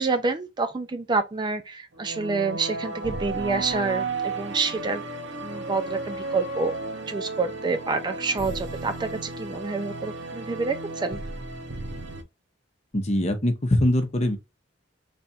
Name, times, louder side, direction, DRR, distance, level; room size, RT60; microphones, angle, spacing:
voice 1, 0.0-5.0 5.4-6.7 7.1-11.2, right 4 dB, 25° right, 0.4 m, -28 dB
sound 1, 1.9-12.2, right 3 dB, 70° right, 0.9 m, -34 dB
voice 2, 12.9-14.4, left 1 dB, 35° left, 0.9 m, -22 dB
3.4 x 2.5 x 4.1 m
head